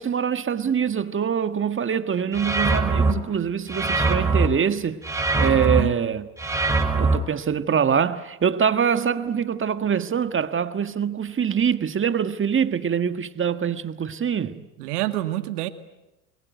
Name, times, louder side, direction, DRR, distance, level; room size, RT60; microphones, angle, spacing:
voice 1, 0.0-5.0 5.4-6.3 7.0-14.6, right 7 dB, 25° right, 1.6 m, -24 dB
sound 1, 2.3-3.1 3.7-4.5 5.0-5.8 6.4-7.2, right 3 dB, 5° right, 4.7 m, -22 dB
voice 2, 5.4-5.9 14.8-15.7, right 16 dB, 80° right, 2.2 m, -28 dB
28.5 x 22.0 x 9.3 m
hypercardioid pair, 90°, 45 cm